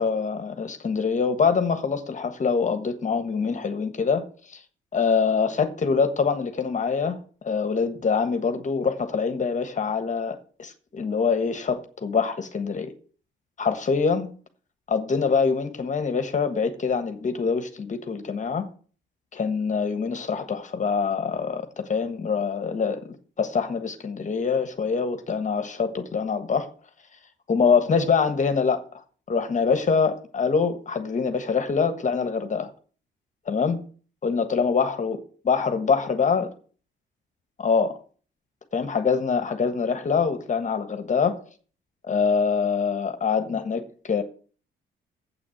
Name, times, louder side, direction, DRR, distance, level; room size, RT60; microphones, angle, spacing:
voice 1, 0.0-4.6 4.9-12.9 13.6-14.3 14.9-18.7 19.3-23.0 23.4-26.7 27.5-28.9 29.3-32.7 33.5-33.8 34.2-35.2 35.4-36.5 37.6-38.0 38.7-41.4 42.1-44.2, left 5 dB, 40° left, 1.4 m, -24 dB
8.0 x 6.2 x 7.8 m
cardioid pair, 90°, 20 cm